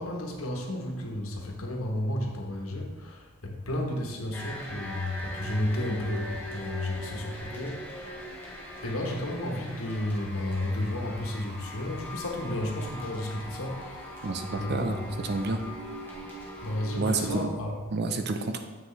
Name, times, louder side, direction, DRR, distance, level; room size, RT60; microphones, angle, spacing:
voice 1, 0.0-8.2 8.8-15.0 16.6-17.8, left 1 dB, 85° left, 0 dB, 1.3 m, -32 dB
sound 1, 4.3-17.4, left 1 dB, 10° left, 1.3 m, -41 dB
voice 2, 14.2-15.6 17.0-17.5 17.9-18.6, right 3 dB, 55° right, 6 dB, 0.6 m, -29 dB
7.6 x 5.8 x 3.3 m, 1.3 s
head